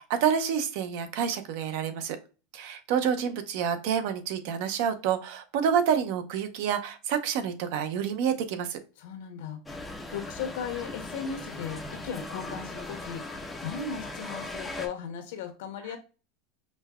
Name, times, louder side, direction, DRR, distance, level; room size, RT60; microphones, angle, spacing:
voice 1, 0.0-2.2 2.5-8.8, right 8 dB, 55° right, 9 dB, 0.6 m, -28 dB
voice 2, 9.0-9.6 10.1-13.2 13.6-16.0, left 7 dB, 75° left, 7 dB, 0.9 m, -36 dB
sound 1, 9.7-14.9, left 2 dB, 5° left, 0.5 m, -39 dB
5.2 x 2.2 x 2.3 m, 0.33 s
supercardioid pair, 160°, 0 cm